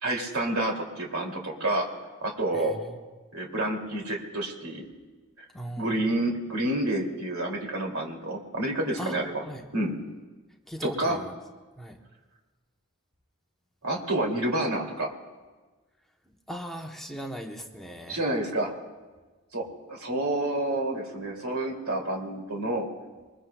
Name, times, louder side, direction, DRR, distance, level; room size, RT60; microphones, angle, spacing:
voice 1, 0.0-1.9 2.2-2.8 3.3-4.8 5.8-9.4 9.7-10.0 10.8-11.2 13.8-15.1 18.1-18.7 19.5-22.9, right 1 dB, 75° right, 0 dB, 2.6 m, -29 dB
voice 2, 2.5-3.0 5.5-6.0 9.0-9.2 9.5-9.6 10.7-11.3 11.8-12.0 16.5-18.2, equal, ahead, 2 dB, 0.8 m, -38 dB
23.5 x 21.5 x 2.3 m, 1.3 s
head